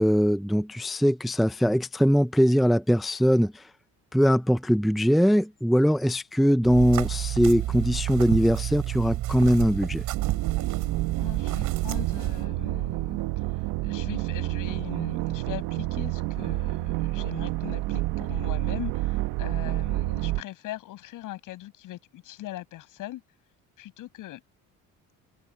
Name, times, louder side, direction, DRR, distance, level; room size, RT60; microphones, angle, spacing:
voice 1, 0.0-3.7 4.1-10.0, equal, ahead, 0.6 m, -21 dB
sound 1, 6.6-12.4, right 14 dB, 65° right, 5.8 m, -30 dB
sound 2, 10.1-20.4, right 18 dB, 85° right, 1.5 m, -29 dB
voice 2, 11.2-13.2 13.5-23.2 23.8-24.4, left 15 dB, 70° left, 7.2 m, -40 dB
open air
cardioid pair, 125°, 33 cm